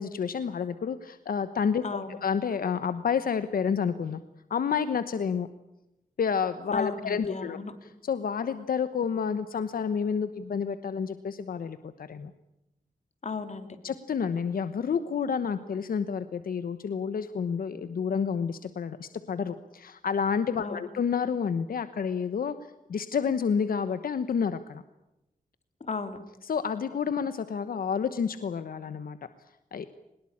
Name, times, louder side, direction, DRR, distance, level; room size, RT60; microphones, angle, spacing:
voice 1, 0.0-1.8 2.2-4.2 4.5-5.5 6.2-7.6 8.0-12.3 13.8-22.5 22.9-24.8 26.4-29.2 29.7-29.9, left 6 dB, 85° left, 11 dB, 1.2 m, -29 dB
voice 2, 1.8-2.2 6.7-7.7 13.2-13.7 20.6-20.9 25.8-26.2, left 4 dB, 50° left, 8 dB, 3.1 m, -34 dB
22.5 x 20.5 x 8.7 m, 0.91 s
wide cardioid pair, 100°, 15 cm